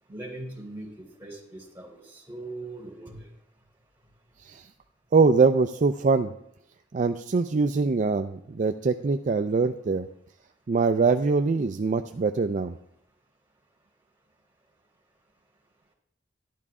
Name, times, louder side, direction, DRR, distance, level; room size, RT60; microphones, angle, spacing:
voice 1, 0.1-3.3, right 2 dB, 10° right, -3 dB, 3.9 m, -40 dB
voice 2, 5.1-6.3 6.9-10.1 10.7-12.7, right 4 dB, 40° right, 7 dB, 0.4 m, -23 dB
12.0 x 12.0 x 3.7 m, 0.73 s
head